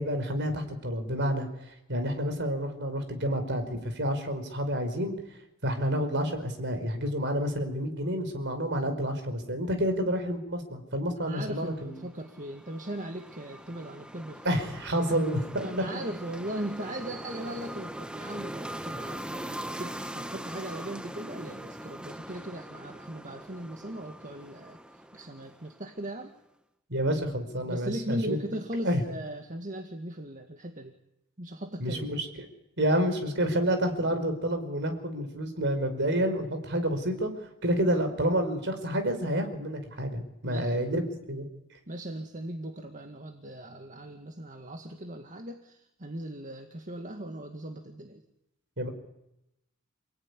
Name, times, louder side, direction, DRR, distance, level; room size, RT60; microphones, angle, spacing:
voice 1, 0.0-1.5 1.9-5.1 5.6-12.0 14.4-15.7 26.9-28.4 28.8-29.0 31.8-32.5 32.8-41.0 41.3-41.5 48.8-48.9, equal, 50° right, 7 dB, 5.1 m, -29 dB
voice 2, 11.2-14.5 14.9-15.2 15.6-26.4 27.6-30.9 31.4-32.1 40.4-40.9 41.9-48.2, right 1 dB, 35° right, 5 dB, 1.9 m, -38 dB
sound 1, 11.7-26.1, right 1 dB, 5° right, 1.0 m, -41 dB
29.0 x 19.0 x 9.9 m, 0.86 s
head